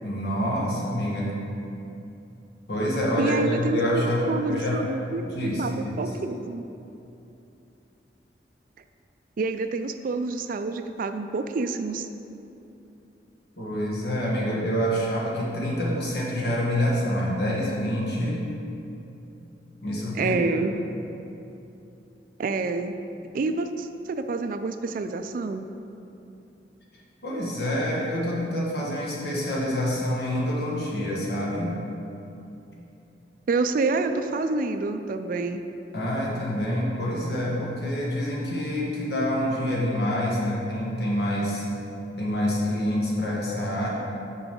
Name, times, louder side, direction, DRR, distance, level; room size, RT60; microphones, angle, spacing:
voice 1, 0.0-1.4 2.7-4.9 5.2-6.0 13.6-18.5 19.8-20.6 27.2-31.7 35.9-41.6 42.2-43.9, equal, 65° left, -4 dB, 1.4 m, -27 dB
voice 2, 3.2-5.3 5.6-6.6 9.4-12.1 20.2-20.7 22.4-22.9 23.3-25.7 33.5-35.6, right 3 dB, 50° right, 8 dB, 0.3 m, -28 dB
5.9 x 4.9 x 5.2 m, 2.8 s
head